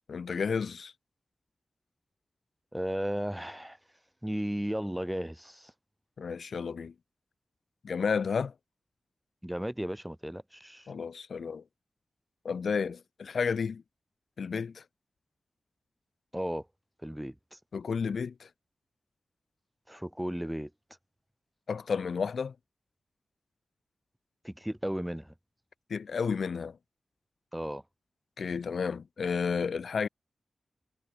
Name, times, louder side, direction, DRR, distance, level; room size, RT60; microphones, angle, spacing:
voice 1, 0.1-0.9 6.2-6.9 7.8-8.5 10.9-11.6 12.4-13.8 14.4-14.8 17.7-18.5 21.7-22.5 25.9-26.8 28.4-30.1, left 5 dB, 85° left, 7.6 m, -31 dB
voice 2, 2.7-3.8 4.2-5.7 9.4-10.9 16.3-16.7 17.0-17.6 19.9-20.7 24.4-25.3 27.5-27.8, equal, 5° right, 5.3 m, -35 dB
wide cardioid pair, 95°, 0 cm